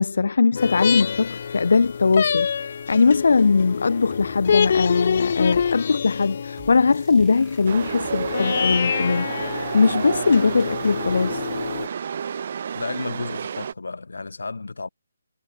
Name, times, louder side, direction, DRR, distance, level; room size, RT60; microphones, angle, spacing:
voice 1, 0.0-11.5, left 4 dB, 60° left, 0.8 m, -20 dB
sound 1, 0.6-11.9, left 6 dB, 40° left, 1.5 m, -27 dB
sound 2, 3.7-8.8, right 20 dB, 10° right, 5.6 m, -50 dB
Chatter / Subway metro underground, 7.7-13.7, right 7 dB, 35° right, 0.7 m, -30 dB
voice 2, 12.7-14.9, left 3 dB, 85° left, 4.0 m, -32 dB
hypercardioid pair, 175°, 0 cm